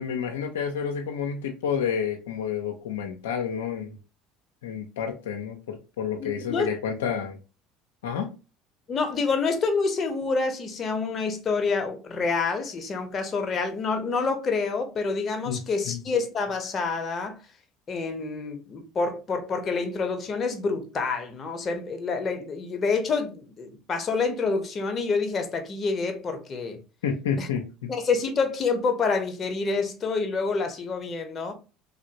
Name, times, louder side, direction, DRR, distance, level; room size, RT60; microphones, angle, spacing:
voice 1, 0.0-4.0 4.6-7.4 8.0-8.3 15.5-15.6 15.9-16.0 27.0-27.9, left 7 dB, 90° left, 0.5 m, -30 dB
voice 2, 6.2-6.7 8.9-17.4 17.9-26.8 27.4-27.5 27.9-31.5, left 4 dB, 40° left, 0.8 m, -27 dB
3.3 x 2.5 x 2.8 m
hypercardioid pair, 80°, 0 cm